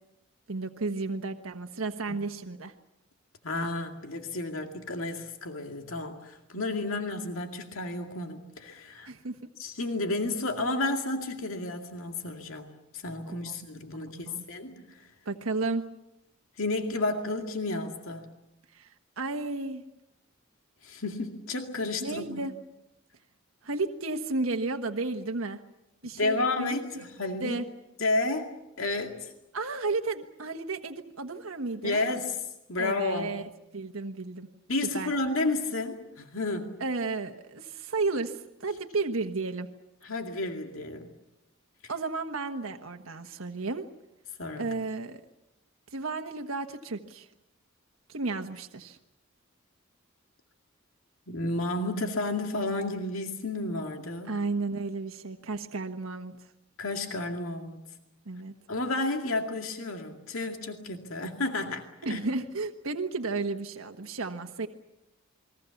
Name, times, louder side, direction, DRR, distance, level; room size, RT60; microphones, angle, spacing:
voice 1, 0.5-2.7 9.1-9.4 13.4-13.5 14.1-14.4 15.2-15.8 18.7-19.8 22.0-22.5 23.6-25.6 26.0-27.7 29.5-32.1 32.8-33.4 33.7-34.5 34.9-35.1 36.8-39.7 41.9-43.8 44.6-45.2 45.9-47.3 48.1-49.0 54.3-56.4 58.2-58.5 62.0-64.7, right 3 dB, 90° right, 5 dB, 1.3 m, -33 dB
voice 2, 3.4-9.1 9.6-15.1 16.6-18.3 20.8-22.5 26.2-27.6 28.0-28.5 28.8-29.3 31.8-32.4 32.7-33.5 34.7-36.8 40.0-41.1 44.4-44.7 51.3-54.4 56.8-57.8 58.7-62.2, left 2 dB, 80° left, 4 dB, 2.2 m, -31 dB
29.0 x 22.0 x 7.1 m, 0.90 s
head